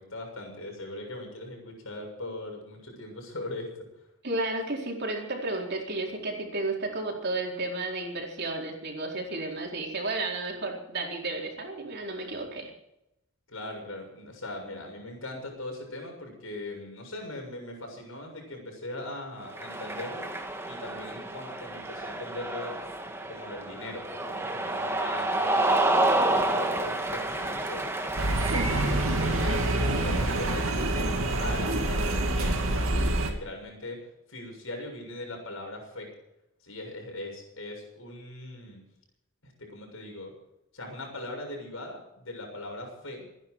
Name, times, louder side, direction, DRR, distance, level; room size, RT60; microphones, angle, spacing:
voice 1, 0.0-3.9 13.5-20.3 20.6-22.8 23.3-25.8 26.2-27.9 28.5-29.7 30.0-31.1 31.4-32.6 32.9-34.0 34.3-36.1 36.6-38.8 39.4-40.3 40.7-43.3, left 1 dB, 70° left, 2 dB, 7.0 m, -40 dB
voice 2, 4.2-12.7, right 2 dB, 50° right, 0 dB, 4.3 m, -32 dB
Cheering, 19.5-32.9, right 2 dB, 10° right, 1.6 m, -30 dB
sound 1, 28.2-33.3, right 1 dB, 70° right, 2.5 m, -26 dB
25.5 x 10.5 x 4.8 m, 0.84 s
head